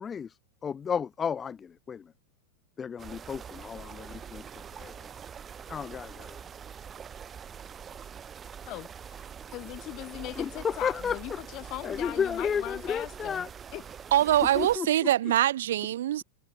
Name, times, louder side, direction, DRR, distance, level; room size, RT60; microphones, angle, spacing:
voice 1, 0.0-2.1 2.8-4.4 4.8-4.9 5.7-6.4 10.4-11.2 11.8-13.5 14.6-14.9, left 7 dB, 20° left, 0.5 m, -32 dB
sound 1, 3.0-14.8, right 7 dB, 20° right, 4.5 m, -44 dB
voice 2, 8.6-13.5 13.7-13.8, left 18 dB, 40° left, 3.6 m, -40 dB
voice 3, 14.1-16.2, right 12 dB, 60° right, 0.3 m, -24 dB
figure-of-eight pair, 90°, 0 cm